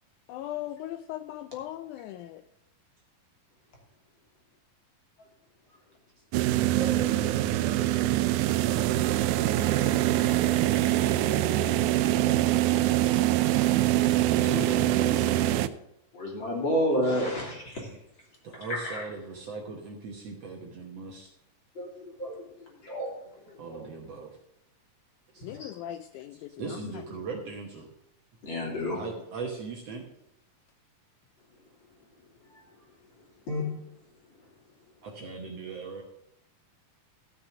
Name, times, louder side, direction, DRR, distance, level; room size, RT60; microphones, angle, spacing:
voice 1, 0.3-2.4 6.7-6.8 11.9-12.7 25.4-26.5, left 13 dB, 85° left, 11 dB, 1.7 m, -39 dB
sound 1, 6.3-15.7, right 14 dB, 85° right, 1.8 m, -24 dB
voice 2, 6.7-8.6 9.4-11.3 14.4-15.5 18.4-21.3 23.6-24.4 25.3-25.4 26.1-27.9 28.9-30.1 35.0-36.0, right 4 dB, 60° right, 1 dB, 1.8 m, -39 dB
voice 3, 16.1-17.9 18.7-19.0 21.7-21.9 22.2-23.2 23.5-23.9 25.4-25.7 28.4-29.0 32.5-32.6 33.5-33.6, equal, 35° left, -2 dB, 3.5 m, -31 dB
14.0 x 6.1 x 6.1 m, 0.82 s
omnidirectional pair, 4.0 m